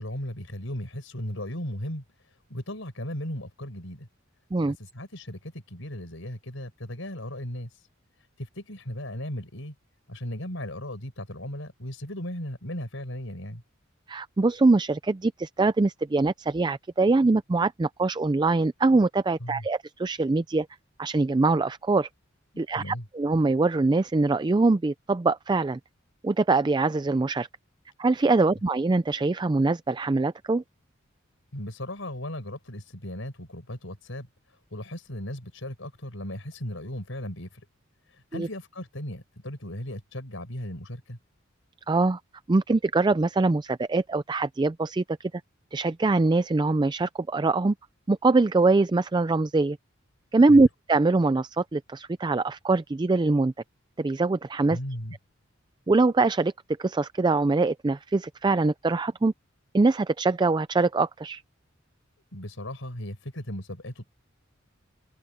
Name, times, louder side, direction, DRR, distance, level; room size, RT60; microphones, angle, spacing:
voice 1, 0.0-2.0 2.5-4.1 4.6-7.9 8.4-9.7 10.1-13.6 19.4-19.6 22.7-23.1 31.5-34.3 34.7-37.6 38.1-41.2 50.5-50.6 54.7-55.2 62.3-64.1, left 1 dB, 75° left, 5.3 m, -36 dB
voice 2, 14.1-20.7 21.0-22.1 22.6-25.8 26.2-27.5 28.0-30.6 38.3-38.5 41.9-42.2 42.5-45.3 45.7-47.7 48.1-49.8 50.3-53.5 54.0-54.8 55.9-56.5 56.8-59.3 59.7-61.4, right 3 dB, 20° right, 0.4 m, -23 dB
head